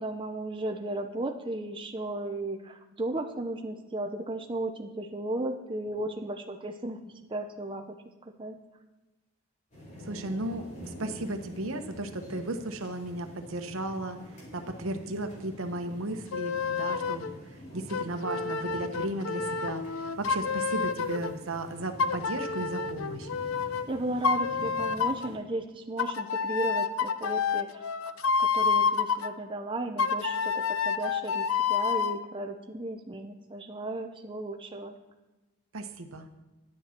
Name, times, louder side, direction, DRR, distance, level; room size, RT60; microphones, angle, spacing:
voice 1, 0.0-7.9 8.4-8.6 23.9-27.8 28.4-35.0, right 2 dB, 25° right, 4 dB, 0.6 m, -35 dB
sound 1, 9.7-25.4, equal, 35° left, 2.9 m, -47 dB
voice 2, 10.1-14.2 14.5-17.3 17.7-19.8 20.2-23.3 35.7-36.3, right 2 dB, 75° right, 7 dB, 1.0 m, -35 dB
sound 2, 16.3-17.3 17.9-21.3 22.0-23.9 24.2-25.3 26.0-29.3 30.0-32.2, left 5 dB, 80° left, 0.5 m, -29 dB
10.5 x 9.9 x 4.4 m, 1.1 s
head